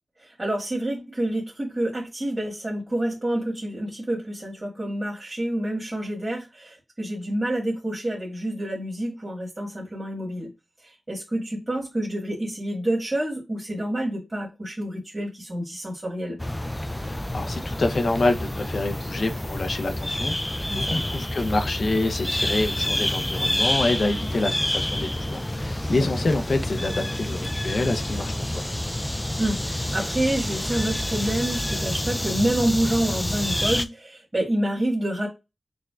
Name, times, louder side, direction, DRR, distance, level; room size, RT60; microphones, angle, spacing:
voice 1, 0.2-10.5 10.8-16.4 20.7-21.0 25.9-26.1 29.4-35.3, right 1 dB, 30° right, 1.5 m, -28 dB
sound 1, 16.4-33.9, left 1 dB, 15° left, 0.3 m, -28 dB
voice 2, 17.0-28.7, left 2 dB, 70° left, 0.6 m, -27 dB
6.1 x 2.1 x 2.3 m
cardioid pair, 40°, 0 cm